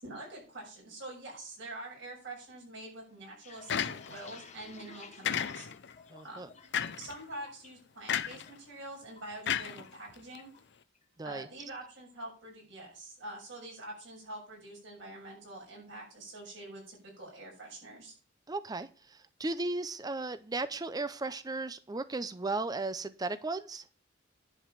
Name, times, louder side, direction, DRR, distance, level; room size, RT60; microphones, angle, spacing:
voice 1, 0.0-5.7 6.2-6.5 7.0-10.5 11.2-18.1, right 2 dB, 60° right, -2 dB, 6.9 m, -45 dB
sound 1, 3.2-6.8 7.2-7.7 8.1-8.5 8.8-10.0 10.4-10.6 10.9-11.4, left 5 dB, 35° left, 1.2 m, -54 dB
sound 2, 3.7-4.3 5.2-5.9 6.7-7.1 8.1-8.5 9.5-10.4, left 9 dB, 60° left, 0.6 m, -33 dB
voice 2, 6.1-6.5 11.2-11.5 18.5-23.8, right 3 dB, 20° right, 14 dB, 0.5 m, -36 dB
10.5 x 5.1 x 7.3 m, 0.37 s
head